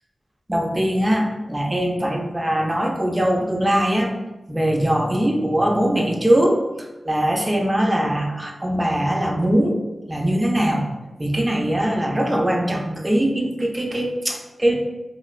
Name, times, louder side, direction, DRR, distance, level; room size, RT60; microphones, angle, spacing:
voice 1, 0.5-4.1 4.5-6.6 7.0-9.8 10.1-10.9 11.2-14.7, right 1 dB, 25° right, 1 dB, 0.6 m, -21 dB
3.1 x 2.7 x 2.4 m, 1.1 s
cardioid pair, 45°, 0 cm